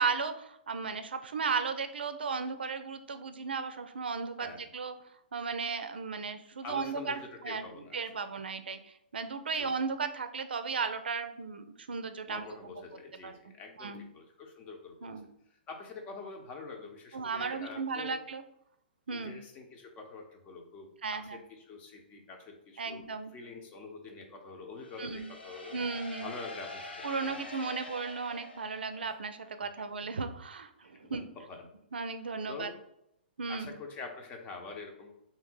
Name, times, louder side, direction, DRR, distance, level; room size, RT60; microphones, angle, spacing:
voice 1, 0.0-5.0 5.3-7.7 7.9-12.5 13.2-13.3 13.8-14.0 15.0-15.3 17.1-18.4 19.1-19.4 21.0-21.4 22.8-23.3 25.0-25.3 25.7-26.3 27.0-31.3 31.9-32.7 33.4-33.7, right 5 dB, 70° right, 9 dB, 0.5 m, -35 dB
voice 2, 4.4-4.7 6.6-8.1 9.5-9.7 12.3-15.2 15.7-18.1 19.1-23.0 23.3-25.8 26.2-27.4 29.0-29.1 30.8-31.7 32.5-32.8 33.5-35.2, left 4 dB, 25° left, 3 dB, 0.9 m, -46 dB
sound 1, 24.8-29.5, left 2 dB, 80° left, 1.0 m, -45 dB
3.7 x 2.8 x 4.4 m, 0.78 s
figure-of-eight pair, 115°, 6 cm